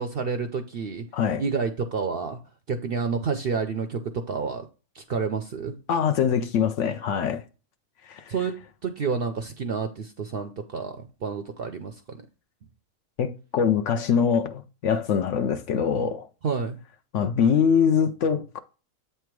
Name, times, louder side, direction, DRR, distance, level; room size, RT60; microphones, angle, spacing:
voice 1, 0.0-1.1 1.4-2.4 2.7-4.0 4.3-4.7 4.9-5.7 8.3-8.5 8.8-12.0 16.4-16.8, right 5 dB, 60° right, 0.6 m, -29 dB
voice 2, 5.9-7.4 8.1-8.3 13.2-16.3 17.1-18.6, left 7 dB, 65° left, 0.8 m, -23 dB
8.2 x 3.4 x 4.6 m
omnidirectional pair, 1.5 m